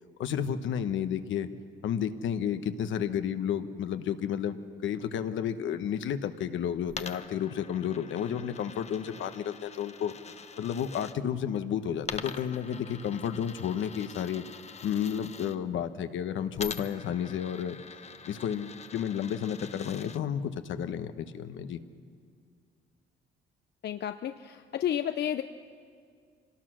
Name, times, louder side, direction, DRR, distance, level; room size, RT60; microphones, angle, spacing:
voice 1, 0.2-1.5 1.8-10.1 10.6-14.4 14.8-17.8 18.3-21.8, left 8 dB, 75° left, 10 dB, 1.1 m, -32 dB
Coin (dropping), 6.9-11.1 12.0-15.6 16.5-20.2, left 5 dB, 35° left, 0.9 m, -44 dB
voice 2, 23.8-25.4, left 10 dB, 60° left, 8 dB, 0.6 m, -31 dB
26.0 x 18.5 x 6.3 m, 2.2 s
cardioid pair, 90°, 20 cm